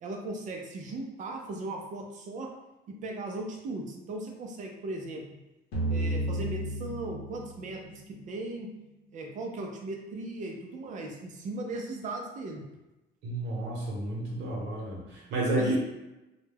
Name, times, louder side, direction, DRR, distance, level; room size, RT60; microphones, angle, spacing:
voice 1, 0.0-2.5 2.9-5.2 5.9-8.7 9.1-12.6 15.6-15.8, right 2 dB, 40° right, 1 dB, 0.5 m, -37 dB
sound 1, 5.7-8.6, right 1 dB, 60° left, 0.8 m, -33 dB
voice 2, 13.2-15.8, right 1 dB, 70° right, -3 dB, 0.9 m, -31 dB
2.3 x 2.1 x 3.3 m, 1.0 s
cardioid pair, 150°, 19 cm